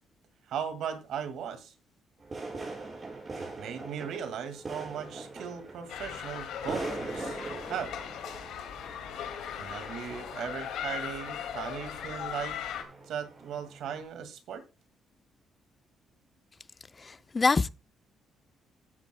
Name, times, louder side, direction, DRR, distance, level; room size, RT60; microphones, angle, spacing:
voice 1, 0.5-1.7 3.4-7.4 7.7-8.0 9.6-12.6 13.1-14.6, right 8 dB, 80° right, 2.0 m, -38 dB
sound 1, 2.2-14.0, right 3 dB, 35° right, 5.8 m, -42 dB
sound 2, 5.9-12.8, left 9 dB, 85° left, 2.2 m, -38 dB
voice 2, 17.0-17.7, left 4 dB, 30° left, 0.4 m, -25 dB
14.5 x 10.5 x 2.2 m
cardioid pair, 90°, 0 cm